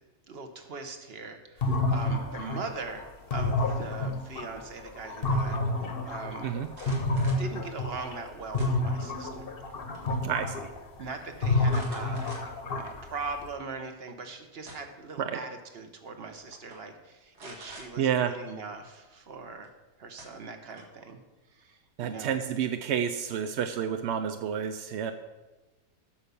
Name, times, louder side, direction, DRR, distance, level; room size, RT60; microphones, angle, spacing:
voice 1, 0.3-3.1 3.3-5.6 6.0-6.5 7.4-9.5 11.0-12.3 12.7-19.7 20.0-21.2 21.5-22.4, right 4 dB, 45° right, 6 dB, 1.0 m, -40 dB
sound 1, 1.6-8.3 8.5-13.5, left 2 dB, 40° left, 1.0 m, -29 dB
sound 2, 6.6-7.5 8.6-9.2 9.6-10.1 10.4-10.5 11.7-12.7 13.2-13.3 14.3-15.1 16.1-16.2 16.5-16.8 17.3-17.9 19.6-19.7 20.2-21.0, right 1 dB, 90° right, 2.4 m, -47 dB
voice 2, 10.2-10.7 15.2-15.4 18.0-18.3 22.0-25.1, right 8 dB, 70° right, 7 dB, 0.6 m, -29 dB
8.9 x 5.6 x 6.9 m, 1.1 s
omnidirectional pair, 1.7 m